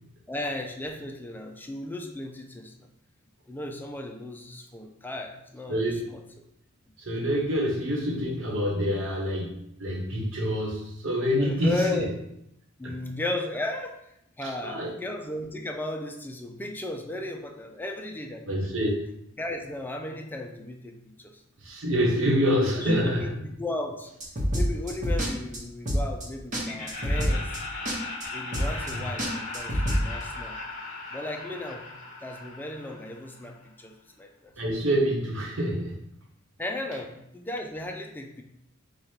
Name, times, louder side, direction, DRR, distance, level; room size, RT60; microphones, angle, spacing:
voice 1, 0.3-2.7 3.5-6.2 11.4-12.2 12.8-14.1 14.4-18.8 19.4-21.4 22.8-24.1 24.5-27.6 28.3-30.6 31.1-31.9 32.2-34.5 36.6-38.4, left 2 dB, 10° left, 3 dB, 0.4 m, -35 dB
voice 2, 5.7-6.0 7.0-12.0 12.8-12.9 14.4-14.9 18.5-18.9 21.6-23.3 28.8-29.0 34.6-36.0, equal, 65° right, -1 dB, 1.1 m, -26 dB
sound 1, 24.2-25.3 25.5-25.6 25.9-26.2 26.5-26.6 26.9-27.6 27.8-28.0 28.2-28.3 28.5-28.9 29.2-30.0, equal, 40° right, 1.0 m, -26 dB
Laughter, 26.6-33.6, left 3 dB, 40° left, 0.8 m, -38 dB
4.9 x 2.4 x 4.5 m, 0.78 s
head